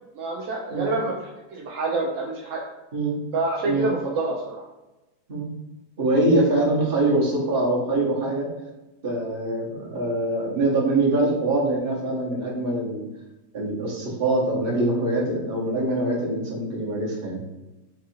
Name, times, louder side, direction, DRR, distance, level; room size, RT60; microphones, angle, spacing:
voice 1, 0.1-2.6 3.3-4.6, right 2 dB, 75° right, -2 dB, 0.7 m, -27 dB
voice 2, 6.0-8.5 9.0-13.0 13.5-17.4, right 2 dB, 40° right, -3 dB, 0.9 m, -23 dB
3.5 x 2.4 x 4.2 m, 1.0 s
omnidirectional pair, 1.8 m